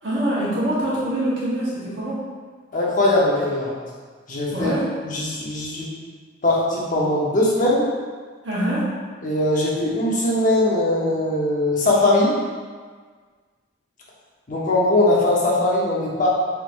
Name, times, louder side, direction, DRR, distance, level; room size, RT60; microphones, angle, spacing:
voice 1, 0.0-2.3 4.5-5.0 8.4-8.9, right 1 dB, 60° right, -8 dB, 1.1 m, -24 dB
voice 2, 2.7-3.7 4.3-4.7 5.0-5.9 6.4-7.9 9.2-12.4 14.5-16.3, left 1 dB, 40° left, -5 dB, 0.9 m, -20 dB
4.3 x 3.6 x 2.5 m, 1.6 s
head